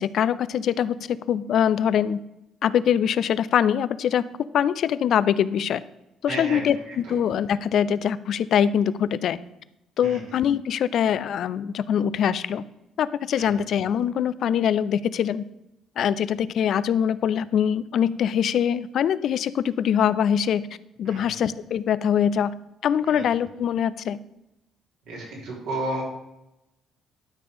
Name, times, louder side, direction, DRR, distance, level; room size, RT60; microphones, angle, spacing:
voice 1, 0.0-2.2 2.6-4.2 4.5-5.8 6.2-9.4 10.0-12.6 13.0-15.4 16.0-20.7 21.0-22.5 22.8-24.2, left 9 dB, 65° left, 16 dB, 0.4 m, -23 dB
voice 2, 6.3-6.6 6.9-7.0 10.0-10.2 13.4-13.5 21.1-21.2 23.1-23.2 25.1-26.0, right 1 dB, 85° right, -4 dB, 3.5 m, -32 dB
12.0 x 4.3 x 5.1 m, 0.91 s
supercardioid pair, 70°, 0 cm